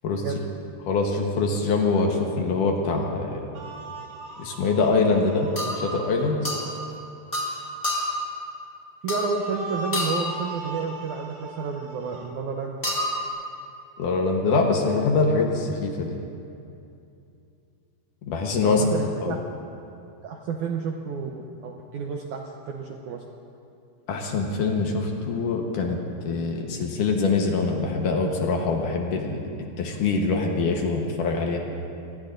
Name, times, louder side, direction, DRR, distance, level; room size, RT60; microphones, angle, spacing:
voice 1, 0.9-3.5 4.4-5.5 5.8-6.4 14.0-16.2 18.3-18.8 19.2-19.4 24.1-29.4 29.8-31.6, left 4 dB, 65° left, 1 dB, 2.4 m, -24 dB
sound 1, 3.5-6.3 9.2-12.3, right 3 dB, 60° right, 3.0 m, -40 dB
sound 2, 4.2-4.4 5.6-5.9 6.4-6.7 7.3-7.5 7.8-8.2 9.1-9.4 9.9-10.4 12.8-13.3, left 1 dB, 15° left, 2.1 m, -28 dB
voice 2, 9.0-12.8 18.6-19.4 20.2-23.2, right 5 dB, 75° right, 1 dB, 1.8 m, -30 dB
26.0 x 19.5 x 2.6 m, 2.6 s
omnidirectional pair, 4.4 m